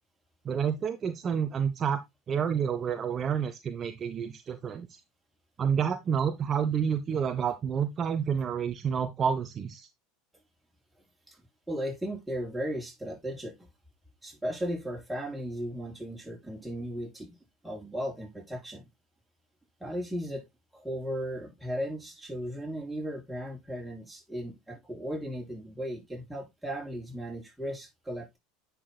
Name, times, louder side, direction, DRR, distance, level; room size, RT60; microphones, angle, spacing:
voice 1, 0.4-2.0 2.3-4.9 5.6-9.9, right 7 dB, 35° right, 0.8 m, -29 dB
voice 2, 11.3-13.7 14.2-17.4 17.6-18.9 19.8-20.5 20.7-28.4, equal, 5° right, 5.0 m, -36 dB
10.0 x 5.9 x 2.2 m
hypercardioid pair, 80°, 0 cm